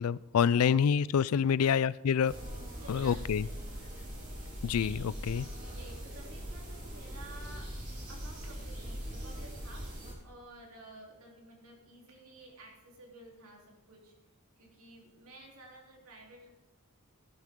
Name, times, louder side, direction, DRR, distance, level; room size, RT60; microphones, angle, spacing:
voice 1, 0.0-2.4 2.9-3.5 4.6-5.5, left 7 dB, 80° left, 20 dB, 0.4 m, -27 dB
sound 1, 2.3-10.1, equal, 35° right, 3.9 m, -41 dB
voice 2, 2.8-3.6 5.8-7.7 8.1-9.9 10.2-14.1 14.6-16.5, right 1 dB, 80° right, -1 dB, 3.3 m, -53 dB
19.0 x 11.0 x 3.7 m, 1.0 s
head